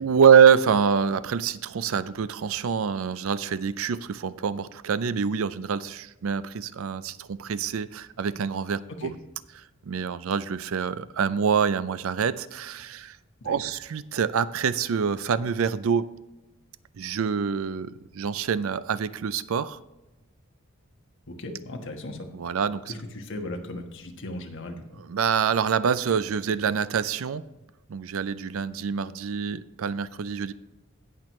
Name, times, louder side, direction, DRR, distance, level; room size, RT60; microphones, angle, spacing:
voice 1, 0.0-9.1 9.6-13.2 13.4-16.1 17.0-19.8 22.3-22.9 25.0-27.4 27.9-30.5, right 7 dB, 70° right, 16 dB, 0.4 m, -25 dB
voice 2, 21.3-22.2 22.9-24.8, left 1 dB, 60° left, 3 dB, 1.4 m, -37 dB
17.5 x 6.1 x 3.1 m, 1.0 s
head